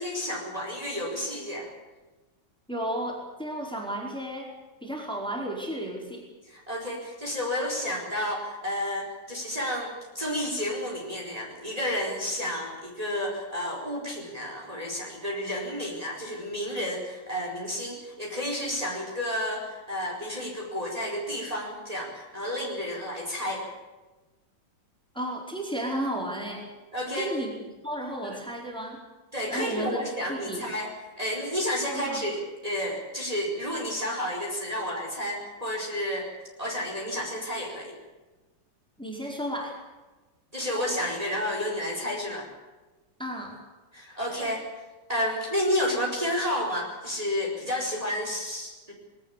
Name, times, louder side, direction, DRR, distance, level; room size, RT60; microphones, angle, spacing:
voice 1, 0.0-1.7 6.5-23.6 26.9-27.3 29.3-30.9 31.2-36.3 36.6-38.0 40.5-42.5 43.9-44.7 45.1-48.9, left 1 dB, 20° right, -1 dB, 4.8 m, -31 dB
voice 2, 2.7-4.5 4.8-6.2 25.1-26.7 27.1-29.0 29.5-30.7 31.9-32.3 39.0-39.7 43.2-43.6, right 1 dB, ahead, -1 dB, 4.8 m, -33 dB
21.0 x 18.5 x 8.5 m, 1.2 s
omnidirectional pair, 1.9 m